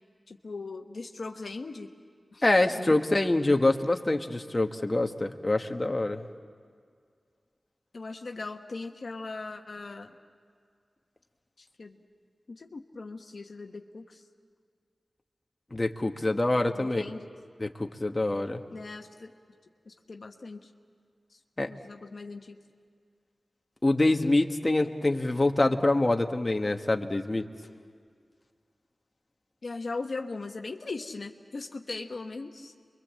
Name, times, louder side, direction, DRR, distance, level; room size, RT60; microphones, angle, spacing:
voice 1, 0.3-1.9 2.3-2.4 2.7-3.0 7.9-10.2 11.6-12.0 12.5-14.2 16.7-17.3 18.7-19.3 19.9-20.7 21.3-21.4 21.7-22.6 29.6-32.7, left 3 dB, 70° left, 4 dB, 1.2 m, -39 dB
voice 2, 2.4-6.2 15.7-17.0 17.6-18.6 21.6-21.7 23.8-27.5, left 2 dB, 30° left, 4 dB, 1.4 m, -25 dB
28.5 x 23.5 x 7.6 m, 2.1 s
wide cardioid pair, 60°, 0 cm